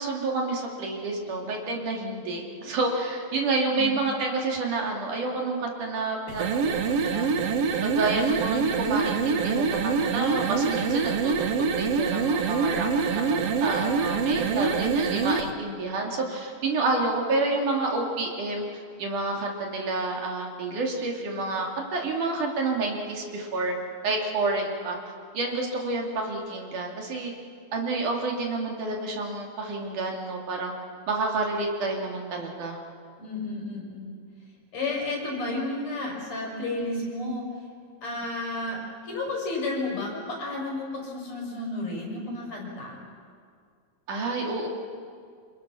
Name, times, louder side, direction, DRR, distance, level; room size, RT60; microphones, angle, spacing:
voice 1, 0.0-7.3 7.8-18.6 19.0-23.8 24.0-25.0 25.3-27.3 27.7-30.7 31.1-32.8 44.1-44.7, right 3 dB, 75° right, 0 dB, 4.2 m, -29 dB
voice 2, 3.7-4.1 33.2-34.1 34.7-37.5 38.0-43.0, left 2 dB, 55° left, -2 dB, 7.2 m, -32 dB
sound 1, 6.3-15.5, right 5 dB, 60° right, 1.9 m, -25 dB
27.5 x 27.0 x 6.3 m, 2.2 s
omnidirectional pair, 3.6 m